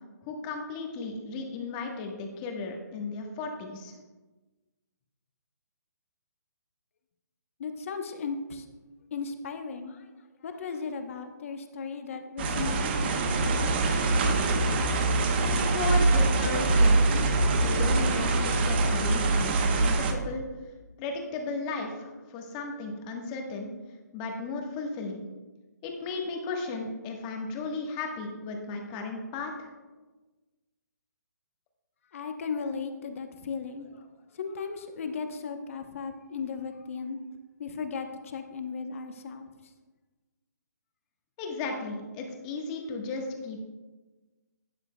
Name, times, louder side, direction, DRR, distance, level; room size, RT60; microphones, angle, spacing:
voice 1, 0.2-3.9 15.6-20.4 21.0-23.7 24.1-25.2 25.8-29.7 41.4-43.7, left 3 dB, 20° left, 2 dB, 1.3 m, -35 dB
voice 2, 7.6-8.7 9.1-10.1 10.4-13.4 32.1-37.2 37.6-39.5, left 5 dB, 45° left, 7 dB, 0.9 m, -36 dB
sound 1, 12.4-20.1, right 2 dB, 35° right, 0.9 m, -24 dB
12.0 x 8.8 x 2.2 m, 1.2 s
hypercardioid pair, 160°, 10 cm